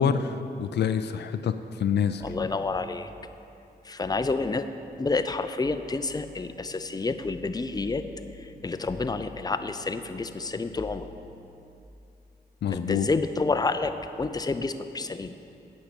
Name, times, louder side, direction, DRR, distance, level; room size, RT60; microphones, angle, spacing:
voice 1, 0.0-2.2 12.6-13.1, left 7 dB, 80° left, 10 dB, 0.4 m, -26 dB
voice 2, 2.2-3.1 3.8-4.7 5.0-8.1 8.3-11.1 12.7-15.3, left 3 dB, 20° left, 9 dB, 0.6 m, -29 dB
9.0 x 6.5 x 8.3 m, 2.7 s
cardioid pair, 60°, 17 cm